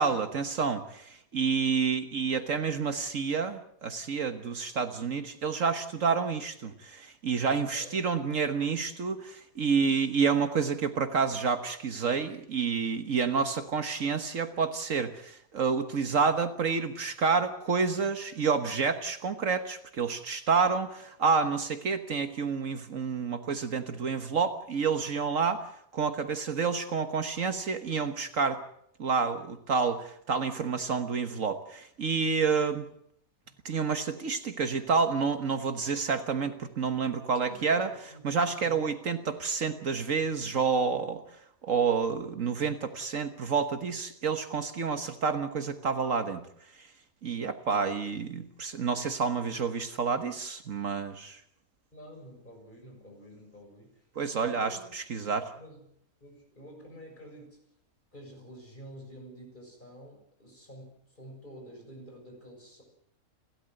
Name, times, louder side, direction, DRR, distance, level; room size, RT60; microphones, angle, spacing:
voice 1, 0.0-25.7 25.9-28.6 29.0-32.9 33.6-37.9 38.2-41.2 41.6-46.4 47.2-51.4 54.2-55.5, right 5 dB, 65° right, 8 dB, 1.6 m, -29 dB
voice 2, 7.6-8.0 33.5-33.6 37.4-38.3 39.2-39.3 51.9-54.0 54.3-57.6 58.1-62.8, equal, 30° left, 2 dB, 7.2 m, -49 dB
30.0 x 13.0 x 7.8 m, 0.71 s
omnidirectional pair, 1.5 m